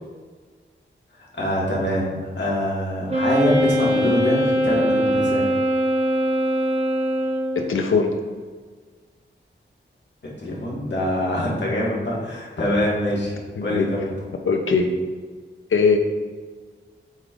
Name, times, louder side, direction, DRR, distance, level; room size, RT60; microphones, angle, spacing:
voice 1, 1.2-5.5 10.4-13.4 13.6-14.3, left 1 dB, 60° left, -5 dB, 1.7 m, -24 dB
Wind instrument woodwind instrument, 3.1-7.7, equal, 30° right, 1.3 m, -21 dB
voice 2, 7.6-8.1 13.6-13.9 14.4-14.9 15.7-16.0, left 5 dB, 90° left, 4 dB, 0.7 m, -20 dB
7.3 x 5.2 x 2.5 m, 1.5 s
wide cardioid pair, 105°, 20 cm